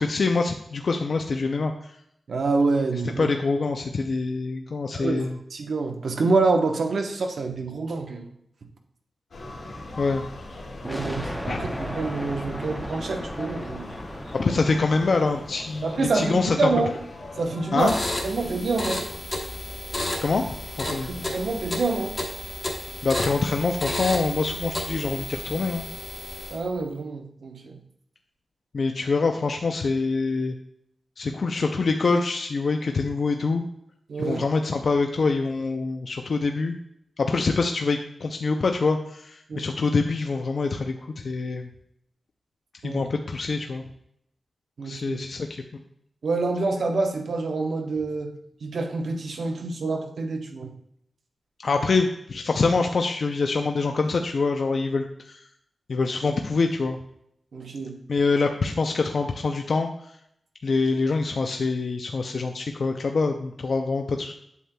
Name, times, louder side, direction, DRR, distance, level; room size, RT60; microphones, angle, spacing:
voice 1, 0.0-1.7 3.2-5.4 10.0-10.2 11.5-11.6 14.3-16.7 17.7-17.9 20.2-20.4 20.8-21.1 23.0-25.8 28.7-30.5 31.2-33.6 34.2-36.7 37.2-41.7 42.8-43.8 44.8-45.5 51.6-55.4 55.9-57.0 58.1-59.9 60.6-64.3, left 4 dB, 60° left, 4 dB, 0.4 m, -25 dB
voice 2, 2.3-3.3 4.9-8.3 10.8-13.9 15.8-16.9 17.4-17.9 18.2-19.1 20.9-22.2 26.5-27.8 34.1-34.4 39.5-39.6 42.8-43.0 44.8-45.2 46.2-48.3 48.6-50.7 57.5-58.0, right 3 dB, 75° right, 4 dB, 0.9 m, -27 dB
sound 1, 9.3-18.3, left 2 dB, 75° left, 1.7 m, -40 dB
sound 2, 10.8-15.7, equal, ahead, 0.7 m, -36 dB
sound 3, 17.8-26.7, left 1 dB, 25° left, 1.2 m, -32 dB
8.2 x 7.4 x 2.2 m, 0.73 s
wide cardioid pair, 155°, 0 cm